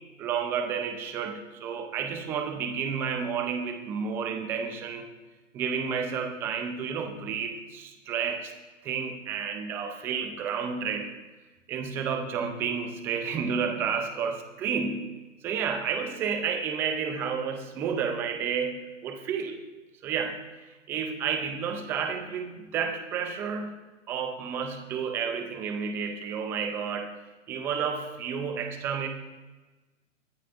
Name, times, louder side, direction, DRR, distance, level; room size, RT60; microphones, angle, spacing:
voice 1, 0.2-5.0 5.5-8.5 8.8-11.1 11.7-15.1 15.4-19.6 20.0-20.4 20.9-23.7 24.1-27.1 27.5-29.1, right 6 dB, 5° right, 6 dB, 0.4 m, -31 dB
22.5 x 14.0 x 2.5 m, 1.2 s
figure-of-eight pair, 130°, 39 cm